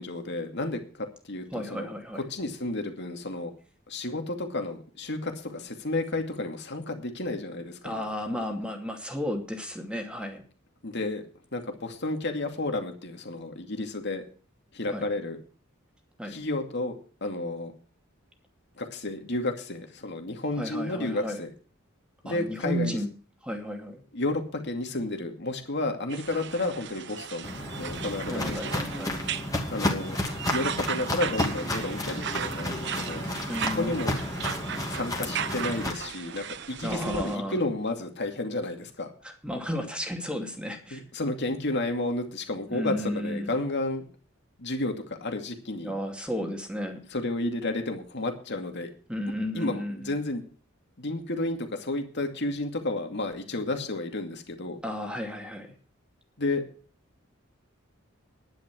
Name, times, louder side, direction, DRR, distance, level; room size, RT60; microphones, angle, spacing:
voice 1, 0.0-3.5 3.9-8.0 10.8-11.3 11.5-14.2 14.7-15.4 16.3-17.7 18.8-21.5 22.2-23.0 24.1-28.8 29.7-30.2 30.5-33.3 33.6-34.2 34.9-39.1 40.9-44.1 44.6-45.9 47.1-48.9 49.5-50.4 51.0-54.8 56.4-56.7, left 2 dB, 55° left, 5 dB, 2.4 m, -32 dB
voice 2, 1.5-2.2 7.8-10.4 14.9-15.0 16.2-16.4 20.6-21.4 22.2-23.1 23.4-24.0 28.3-29.1 33.5-34.2 36.8-37.6 39.2-41.0 42.7-43.5 45.8-47.0 49.1-50.1 54.8-55.7, equal, 5° right, 3 dB, 2.5 m, -33 dB
sound 1, 26.1-37.4, right 8 dB, 55° right, 0.8 m, -36 dB
Walk footsteps, 27.4-35.9, left 1 dB, 15° left, 2.5 m, -32 dB
11.0 x 10.5 x 6.2 m, 0.40 s
head